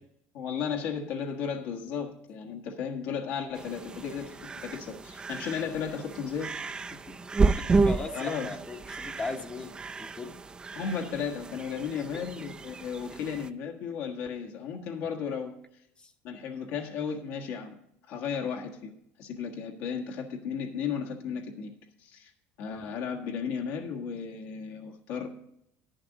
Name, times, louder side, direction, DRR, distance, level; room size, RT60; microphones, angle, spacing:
voice 1, 0.3-6.5 8.1-8.5 10.7-15.5 16.2-17.8 18.1-18.9 19.2-21.7 22.0-22.3 22.6-25.3, left 7 dB, 70° left, 1 dB, 1.5 m, -34 dB
sound 1, 3.5-13.5, right 4 dB, 15° right, 0.4 m, -31 dB
voice 2, 7.4-10.4 11.9-12.2 13.1-13.2 16.0-16.1, left 3 dB, 20° left, 6 dB, 0.8 m, -39 dB
11.0 x 10.5 x 3.9 m, 0.73 s
cardioid pair, 155°, 5 cm